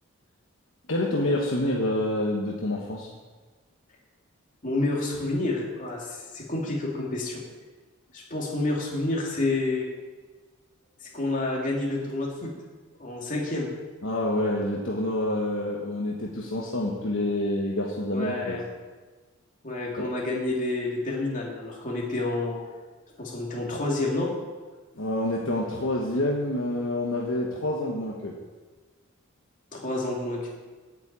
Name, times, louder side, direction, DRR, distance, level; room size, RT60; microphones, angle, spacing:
voice 1, 0.9-3.1 14.0-18.6 20.0-20.1 25.0-28.3, left 1 dB, 60° left, -2 dB, 1.3 m, -27 dB
voice 2, 4.6-7.4 8.1-9.9 11.0-12.5 13.0-13.7 18.1-18.6 19.6-22.6 23.2-24.3 29.7-30.5, left 2 dB, 35° left, -3 dB, 2.5 m, -29 dB
8.8 x 7.3 x 8.8 m, 1.3 s
head